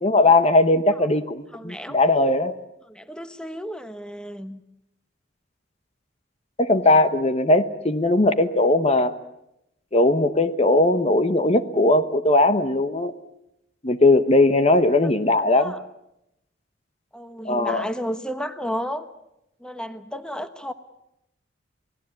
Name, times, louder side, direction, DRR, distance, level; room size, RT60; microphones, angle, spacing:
voice 1, 0.0-2.5 6.6-9.1 9.9-13.1 13.8-15.7 17.4-17.8, left 2 dB, 35° left, 10 dB, 1.0 m, -19 dB
voice 2, 1.5-2.0 2.8-4.6 15.5-15.8 17.1-19.1 19.6-20.7, equal, 5° left, 9 dB, 1.1 m, -32 dB
28.0 x 19.0 x 8.5 m, 0.85 s
head